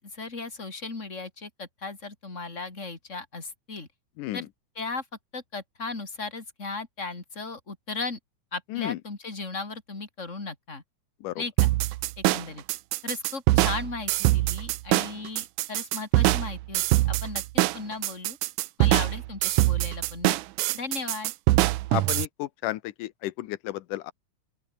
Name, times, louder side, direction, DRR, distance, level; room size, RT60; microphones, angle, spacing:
voice 1, 0.0-3.9 4.3-4.5 4.8-5.1 5.3-8.2 8.5-10.8 11.3-11.7 12.2-12.6 13.0-18.4 18.8-20.4 20.7-21.3, left 3 dB, 20° left, 4.0 m, -36 dB
sound 1, 11.6-22.3, right 18 dB, 80° right, 2.1 m, -24 dB
voice 2, 21.9-24.1, left 16 dB, 90° left, 2.5 m, -32 dB
open air
omnidirectional pair, 3.6 m